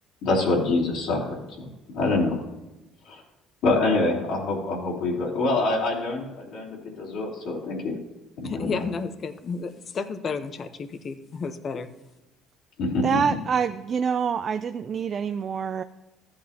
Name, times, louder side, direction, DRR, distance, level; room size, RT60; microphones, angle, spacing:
voice 1, 0.2-2.4 3.0-3.2 3.6-8.0 8.4-8.8 12.8-13.4, left 2 dB, 70° left, -4 dB, 3.0 m, -26 dB
voice 2, 8.4-11.9, left 5 dB, 45° left, 10 dB, 0.8 m, -32 dB
voice 3, 13.0-15.8, right 6 dB, 45° right, 10 dB, 0.4 m, -26 dB
13.5 x 8.6 x 2.9 m, 1.0 s
supercardioid pair, 90°, 0 cm